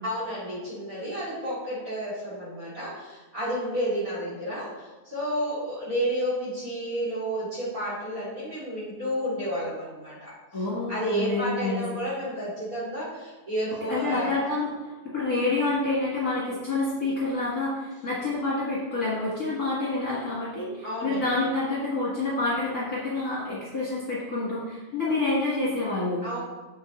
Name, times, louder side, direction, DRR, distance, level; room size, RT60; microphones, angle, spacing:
voice 1, 0.0-10.3 10.9-14.4 20.8-21.3 26.2-26.4, equal, 30° right, -7 dB, 2.8 m, -31 dB
voice 2, 10.5-11.8 13.9-14.7 15.1-26.2, left 2 dB, 30° left, -8 dB, 2.3 m, -28 dB
8.0 x 7.2 x 3.9 m, 1.2 s
omnidirectional pair, 3.5 m